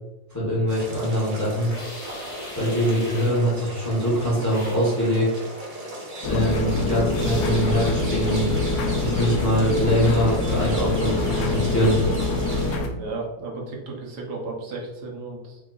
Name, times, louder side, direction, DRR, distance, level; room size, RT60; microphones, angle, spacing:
voice 1, 0.3-1.7 2.6-5.3 6.2-8.5 9.0-12.0, equal, 10° left, -8 dB, 1.1 m, -23 dB
sound 1, 0.7-12.8, right 1 dB, 30° right, 0.7 m, -36 dB
sound 2, 1.7-3.5 4.5-4.9 7.1-7.7, left 2 dB, 45° left, 1.3 m, -41 dB
sound 3, 6.2-12.9, left 2 dB, 75° left, 1.2 m, -25 dB
voice 2, 13.0-15.6, right 3 dB, 75° right, -1 dB, 1.5 m, -34 dB
4.7 x 3.8 x 2.5 m, 1.0 s
omnidirectional pair, 1.8 m